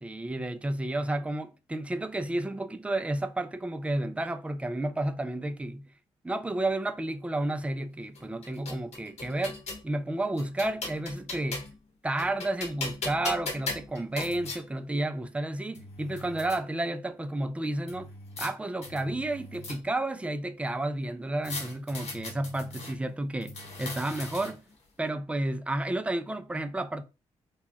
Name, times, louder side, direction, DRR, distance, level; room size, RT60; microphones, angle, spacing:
voice 1, 0.0-5.8 6.2-11.7 12.0-18.1 18.4-24.6 25.0-27.0, right 1 dB, 10° right, 0.4 m, -31 dB
sound 1, 8.2-9.9 10.4-11.8 12.2-14.6 15.4-15.5 15.8-16.6 17.9-18.5 18.8-20.1 21.4-22.9 23.4-24.7, left 3 dB, 65° left, 1.1 m, -39 dB
3.0 x 2.2 x 3.9 m
supercardioid pair, 60°, 12 cm